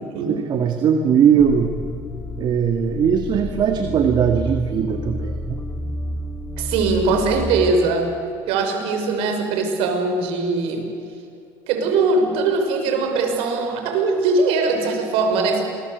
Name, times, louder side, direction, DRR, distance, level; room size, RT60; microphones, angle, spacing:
voice 1, 0.3-1.7 2.4-5.6, right 7 dB, 50° right, 6 dB, 2.1 m, -19 dB
sound 1, 1.4-7.7, left 1 dB, 25° left, 3.1 m, -30 dB
voice 2, 6.6-8.1 8.5-10.9 11.7-15.6, right 3 dB, 75° right, 5 dB, 5.6 m, -21 dB
27.5 x 21.5 x 8.1 m, 2.6 s
supercardioid pair, 100°, 10 cm